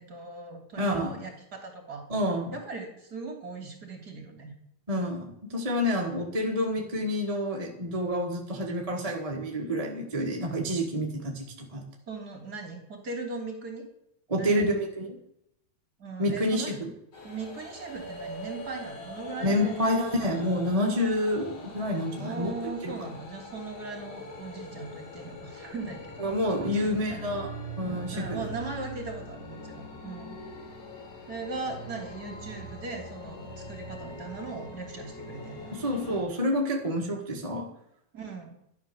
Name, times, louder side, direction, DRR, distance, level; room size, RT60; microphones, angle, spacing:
voice 1, 0.0-2.1 2.5-4.5 12.1-13.9 14.3-14.7 16.0-16.7 17.2-20.1 22.2-26.3 26.6-27.4 28.1-30.4 31.3-35.8 38.1-38.6, right 3 dB, 30° right, 3 dB, 3.2 m, -39 dB
voice 2, 0.8-1.2 2.1-2.5 4.9-11.8 14.3-15.2 16.2-16.9 19.4-22.5 22.8-23.1 26.2-27.5 27.8-28.5 35.7-37.7, left 1 dB, 15° right, 0 dB, 1.3 m, -28 dB
sound 1, 17.1-36.2, left 1 dB, 85° left, 5.0 m, -42 dB
13.0 x 11.0 x 7.1 m, 0.77 s
omnidirectional pair, 3.5 m